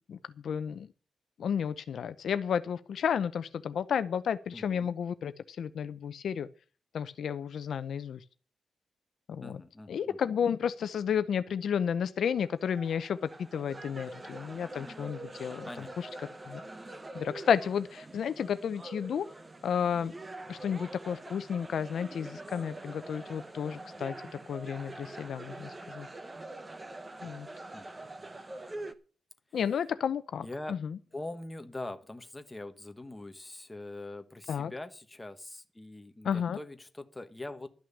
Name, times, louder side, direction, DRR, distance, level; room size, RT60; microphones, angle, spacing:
voice 1, 0.4-0.9 1.4-6.5 6.9-8.2 9.3-9.6 9.9-15.7 16.0-16.1 16.5-16.6 17.1-19.3 19.6-20.1 20.5-24.1 24.5-26.1 27.2-27.5 29.5-31.0 34.5-34.7 36.2-36.6, left 7 dB, 65° left, 13 dB, 0.6 m, -32 dB
voice 2, 4.5-4.9 9.4-10.2 15.6-15.9 27.7-27.9 30.4-30.8 31.1-37.7, left 2 dB, 10° left, 7 dB, 1.3 m, -43 dB
sound 1, 12.2-28.9, right 2 dB, 20° right, 1.0 m, -45 dB
12.5 x 6.2 x 8.3 m, 0.39 s
wide cardioid pair, 155°, 0 cm